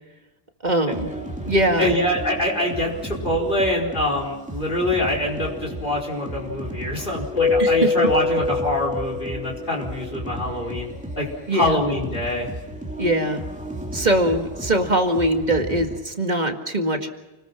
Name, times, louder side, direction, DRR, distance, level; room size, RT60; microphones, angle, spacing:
voice 1, 0.6-1.1 1.5-2.0 7.6-7.9 11.5-11.8 13.0-13.4 13.9-17.1, right 1 dB, 45° right, 4 dB, 2.1 m, -22 dB
sound 1, 0.9-16.0, right 1 dB, 5° right, 2.7 m, -34 dB
voice 2, 1.8-12.5, left 1 dB, 55° left, -1 dB, 4.9 m, -25 dB
Keyboard (musical), 7.4-9.9, left 4 dB, 30° left, 1.7 m, -23 dB
29.5 x 20.0 x 6.0 m, 1.1 s
omnidirectional pair, 1.0 m